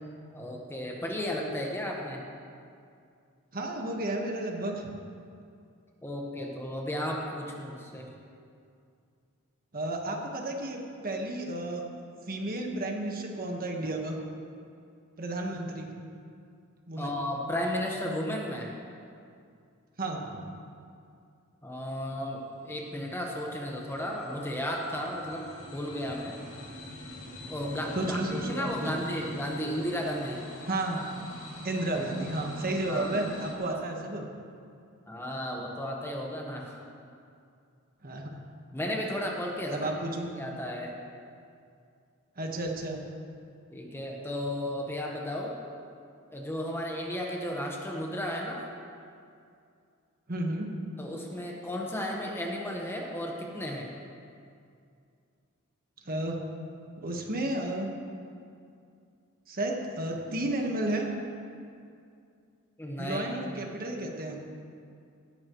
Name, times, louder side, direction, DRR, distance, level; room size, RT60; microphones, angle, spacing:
voice 1, 0.3-2.3 6.0-8.1 17.0-18.7 21.6-26.4 27.5-28.2 28.5-30.5 32.9-33.1 35.1-36.8 38.7-39.9 40.3-40.9 43.7-45.6 46.3-48.6 51.0-53.9 62.8-63.6, left 1 dB, 10° left, -1 dB, 1.2 m, -34 dB
voice 2, 3.5-5.0 9.7-11.8 12.3-14.2 15.2-15.9 16.9-17.1 20.0-20.4 27.9-29.0 30.7-31.0 31.6-34.2 38.0-38.3 39.7-40.3 42.4-43.0 50.3-50.7 56.1-56.4 57.0-57.9 59.5-61.1 63.0-64.4, right 1 dB, 45° right, 1 dB, 1.4 m, -32 dB
sound 1, 22.3-33.6, left 1 dB, 35° left, 2.2 m, -44 dB
17.0 x 13.0 x 3.1 m, 2.4 s
head